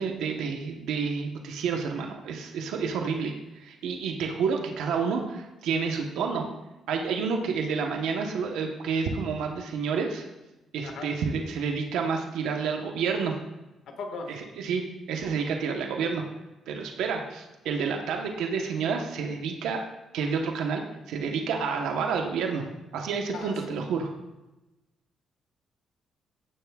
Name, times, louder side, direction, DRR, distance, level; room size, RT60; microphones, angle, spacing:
voice 1, 0.0-6.5 6.9-10.3 10.7-13.3 14.3-14.8 15.1-16.2 16.7-19.8 20.1-20.8 21.1-22.6 22.9-24.1, right 5 dB, 85° right, 3 dB, 1.0 m, -29 dB
voice 2, 13.9-14.3 23.3-23.7, left 4 dB, 75° left, 4 dB, 1.5 m, -37 dB
15.5 x 7.1 x 2.3 m, 1.0 s
cardioid pair, 90°, 0 cm